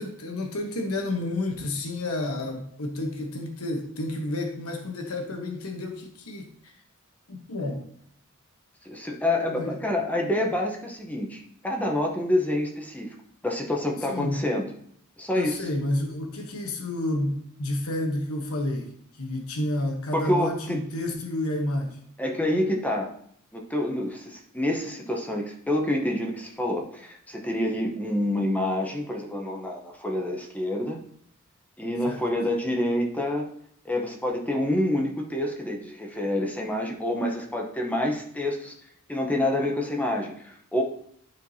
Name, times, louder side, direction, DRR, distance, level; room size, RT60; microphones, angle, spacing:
voice 1, 0.0-6.7 7.3-7.8 9.5-9.8 14.1-14.4 15.3-22.0 32.0-32.2, left 1 dB, 75° left, 3 dB, 1.1 m, -30 dB
voice 2, 8.8-13.1 13.4-14.7 15.2-15.7 20.1-20.8 22.2-23.1 23.5-31.0 31.8-33.5 33.8-38.7 39.1-40.8, left 1 dB, 5° left, 1 dB, 0.8 m, -27 dB
11.5 x 4.5 x 2.8 m, 0.66 s
head